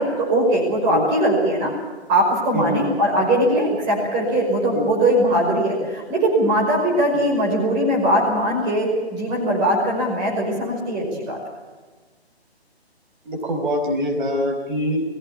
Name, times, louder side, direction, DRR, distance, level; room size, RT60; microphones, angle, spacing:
voice 1, 0.0-1.7 2.1-11.4, right 1 dB, 15° right, -2 dB, 5.4 m, -20 dB
voice 2, 2.5-2.9 4.7-4.9 7.1-7.2 13.2-15.0, equal, 50° right, 3 dB, 4.9 m, -24 dB
22.5 x 16.5 x 8.6 m, 1.4 s
figure-of-eight pair, 155°, 33 cm